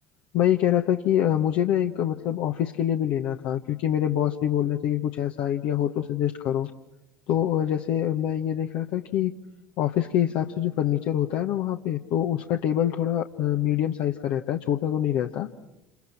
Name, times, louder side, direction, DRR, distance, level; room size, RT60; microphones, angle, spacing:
voice 1, 0.3-6.7 7.3-9.4 9.8-15.5, left 11 dB, 55° left, 4 dB, 1.2 m, -25 dB
29.0 x 28.5 x 5.9 m, 0.91 s
figure-of-eight pair, 65°, 10 cm